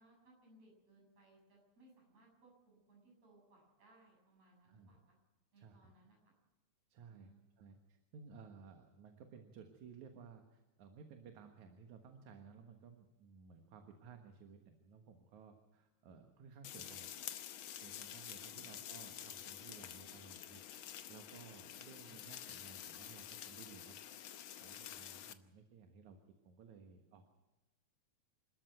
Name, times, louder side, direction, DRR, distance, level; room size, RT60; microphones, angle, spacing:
voice 1, 0.0-5.2 5.5-6.3 7.1-7.8 18.4-19.1, right 2 dB, 55° right, 0 dB, 8.3 m, -67 dB
voice 2, 5.6-5.9 6.9-7.3 7.6-17.1 17.8-24.0 24.6-27.3, right 5 dB, 70° right, 5 dB, 2.8 m, -57 dB
sound 1, 16.6-25.3, left 10 dB, 90° left, 1.1 m, -49 dB
28.0 x 13.0 x 7.9 m, 1.1 s
omnidirectional pair, 3.6 m